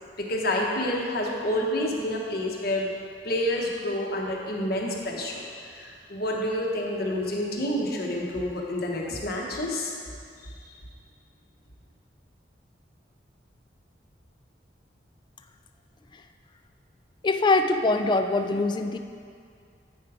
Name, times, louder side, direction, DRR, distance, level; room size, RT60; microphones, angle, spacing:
voice 1, 0.2-2.9 3.2-5.4 5.8-9.9, left 1 dB, 60° left, -1 dB, 1.1 m, -28 dB
voice 2, 17.2-19.0, left 3 dB, 25° left, 7 dB, 0.3 m, -23 dB
8.3 x 4.8 x 4.8 m, 2.3 s
head